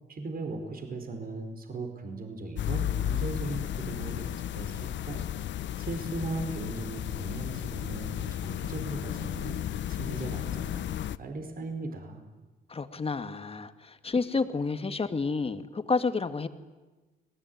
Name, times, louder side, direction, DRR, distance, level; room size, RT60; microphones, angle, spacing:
voice 1, 0.1-5.2 5.8-9.6 9.9-12.2, right 3 dB, 45° right, 5 dB, 4.7 m, -38 dB
sound 1, 2.5-11.2, left 11 dB, 65° left, 0.9 m, -33 dB
voice 2, 12.7-16.5, left 4 dB, 30° left, 10 dB, 2.0 m, -30 dB
29.5 x 20.5 x 9.5 m, 1.2 s
cardioid pair, 90°, 20 cm